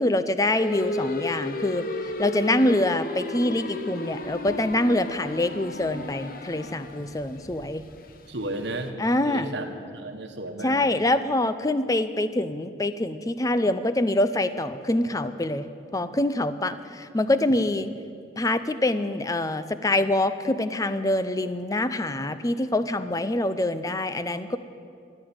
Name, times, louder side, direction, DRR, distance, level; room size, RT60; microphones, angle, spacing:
voice 1, 0.0-1.9 2.2-7.8 9.0-9.6 10.6-15.7 15.9-17.9 18.4-24.6, left 1 dB, 20° left, 12 dB, 0.5 m, -25 dB
sound 1, 0.6-8.9, left 2 dB, 50° left, 0.9 m, -34 dB
voice 2, 8.3-8.9 9.2-9.6 9.9-10.9, right 2 dB, 75° right, 5 dB, 1.5 m, -33 dB
14.5 x 10.5 x 8.8 m, 2.3 s
head